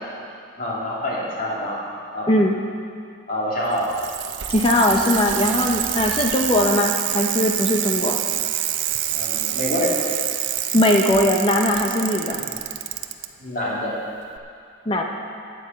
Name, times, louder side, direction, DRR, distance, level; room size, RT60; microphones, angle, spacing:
voice 1, 0.6-1.8 2.1-2.3 3.3-3.9 9.1-9.9 12.3-12.5 13.4-13.9, left 1 dB, 45° left, -5 dB, 2.8 m, -26 dB
Bicycle, 3.6-13.3 14.4-14.5, right 12 dB, 80° right, 0.6 m, -26 dB
voice 2, 4.5-8.2 10.7-12.4 14.9-15.0, left 1 dB, 25° left, 2 dB, 0.7 m, -19 dB
10.0 x 9.2 x 7.4 m, 2.4 s
head